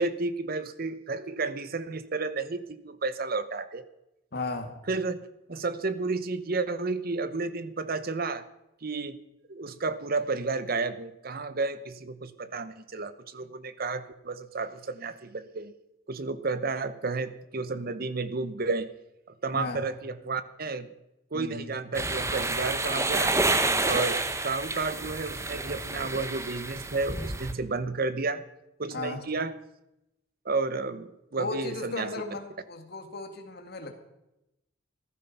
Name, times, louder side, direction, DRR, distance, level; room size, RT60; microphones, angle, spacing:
voice 1, 0.0-3.8 4.9-5.2 5.5-8.4 8.8-9.2 9.5-15.7 16.1-18.9 19.4-20.9 21.3-23.4 23.8-24.2 24.4-28.4 28.8-29.5 30.4-32.1, right 3 dB, 50° right, 14 dB, 0.9 m, -31 dB
voice 2, 4.3-4.8 19.5-19.8 21.3-21.7 28.9-29.2 31.4-33.9, left 3 dB, 55° left, 5 dB, 2.0 m, -35 dB
sound 1, 21.9-27.5, right 2 dB, 15° right, 0.9 m, -29 dB
14.5 x 12.5 x 5.8 m, 0.90 s
head